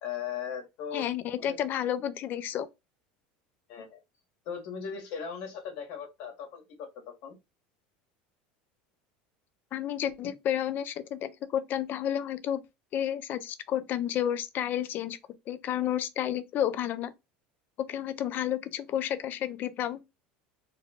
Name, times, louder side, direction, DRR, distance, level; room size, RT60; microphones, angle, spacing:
voice 1, 0.0-1.0 1.4-1.6 3.7-4.0 4.4-6.9 7.2-7.3, left 7 dB, 65° left, 1.5 m, -38 dB
voice 2, 0.9-2.7 9.7-12.6 12.9-15.2 15.5-17.1 17.9-20.0, left 10 dB, 45° left, 0.6 m, -31 dB
3.3 x 2.3 x 3.5 m
supercardioid pair, 110°, 4 cm